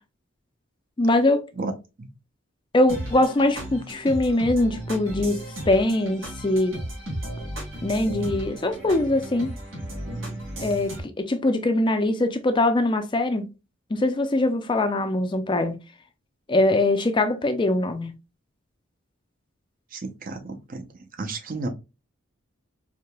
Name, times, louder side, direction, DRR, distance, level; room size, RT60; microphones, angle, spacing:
voice 1, 1.0-1.5 2.7-6.7 7.8-9.5 10.6-13.5 13.9-15.8 16.5-18.1, left 2 dB, 25° left, 0.4 m, -22 dB
sound 1, 2.9-11.0, right 1 dB, 80° right, 2.3 m, -35 dB
voice 2, 19.9-20.9 21.2-21.7, right 3 dB, 45° right, 0.6 m, -32 dB
4.7 x 2.8 x 2.2 m
head